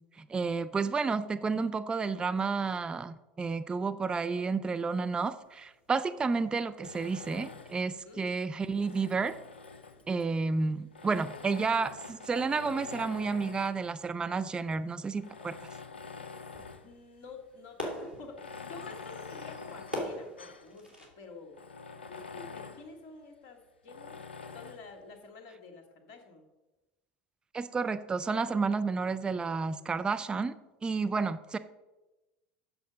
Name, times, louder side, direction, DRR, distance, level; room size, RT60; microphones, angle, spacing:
voice 1, 0.2-9.3 10.1-15.6 27.5-30.5 30.8-31.6, right 4 dB, 15° right, 12 dB, 0.4 m, -31 dB
sound 1, 5.2-21.1, left 1 dB, 90° right, 2.2 m, -47 dB
Tools, 6.8-8.0 8.6-10.2 10.9-13.8 14.5-14.6 15.2-16.9 17.3-17.4 18.3-20.7 21.1-21.2 21.5-22.9 23.9-24.9, left 4 dB, 80° left, 0.5 m, -46 dB
voice 2, 16.8-21.6 22.1-24.1 24.5-26.4, left 4 dB, 50° left, 4 dB, 1.8 m, -49 dB
8.4 x 6.7 x 5.1 m, 1.0 s
figure-of-eight pair, 75°, 6 cm